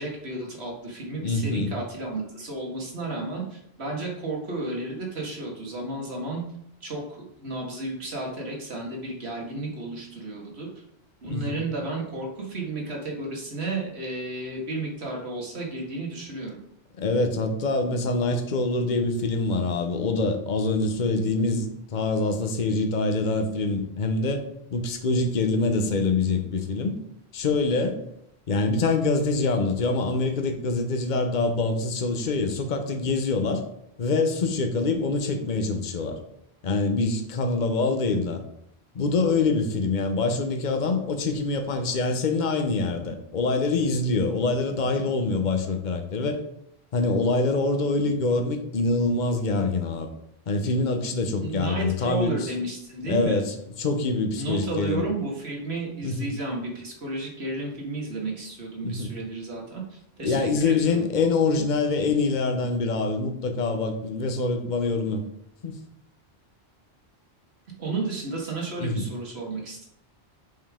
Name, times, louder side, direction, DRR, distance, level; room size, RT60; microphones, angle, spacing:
voice 1, 0.0-6.4 6.8-10.7 11.2-16.6 51.4-53.4 54.4-61.1 61.5-61.7 67.8-69.8, right 2 dB, 80° right, -1 dB, 2.1 m, -32 dB
voice 2, 1.2-1.8 11.3-11.6 17.0-24.4 24.7-27.0 27.3-28.0 28.5-33.6 34.0-36.2 36.6-38.4 38.9-46.4 46.9-50.1 50.5-52.5 53.0-55.0 56.0-56.4 58.8-59.1 60.2-65.2 65.6-65.7 68.8-69.1, left 3 dB, 50° left, 6 dB, 1.0 m, -25 dB
7.6 x 5.4 x 3.6 m, 0.74 s
omnidirectional pair, 1.1 m